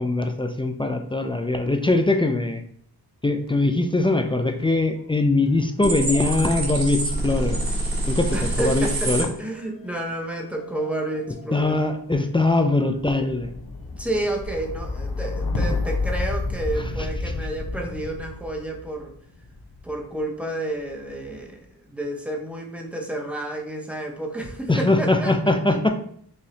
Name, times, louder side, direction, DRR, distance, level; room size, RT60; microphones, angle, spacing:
voice 1, 0.0-2.6 3.2-7.6 8.1-9.3 11.5-13.5 24.7-25.9, left 2 dB, 15° left, 5 dB, 0.3 m, -22 dB
sound 1, 3.4-4.8 5.0-20.1 20.8-21.4, left 3 dB, 60° left, 0.8 m, -33 dB
sound 2, 5.8-9.2, right 1 dB, 65° right, 1.3 m, -26 dB
voice 2, 8.3-11.7 13.9-19.1 19.8-21.6 21.8-25.9, right 1 dB, 5° right, 1 dB, 0.7 m, -30 dB
4.9 x 2.7 x 2.8 m, 0.62 s
wide cardioid pair, 85°, 38 cm